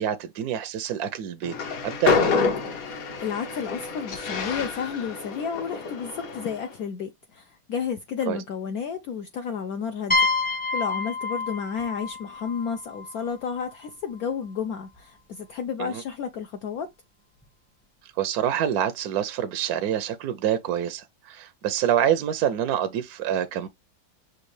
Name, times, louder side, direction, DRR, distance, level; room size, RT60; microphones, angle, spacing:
voice 1, 0.0-1.5 1.8-2.4 8.3-8.4 15.8-16.0 18.0-23.7, right 10 dB, 70° right, 0.9 m, -26 dB
Train, 1.4-6.7, left 5 dB, 55° left, 1.2 m, -28 dB
voice 2, 2.8-16.9, left 6 dB, 75° left, 0.8 m, -32 dB
sound 1, 10.1-13.7, left 3 dB, 10° left, 0.5 m, -28 dB
6.3 x 2.5 x 3.1 m
omnidirectional pair, 2.1 m